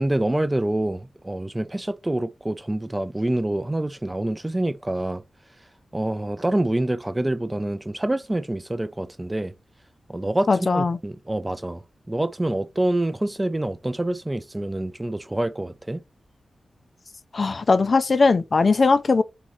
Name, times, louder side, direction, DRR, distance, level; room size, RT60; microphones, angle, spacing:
voice 1, 0.0-5.2 5.9-9.5 10.1-16.0, right 1 dB, 15° right, 0.4 m, -26 dB
voice 2, 10.5-11.0 17.3-19.2, left 4 dB, 50° left, 0.4 m, -19 dB
4.1 x 3.7 x 3.0 m
wide cardioid pair, 85°, 0 cm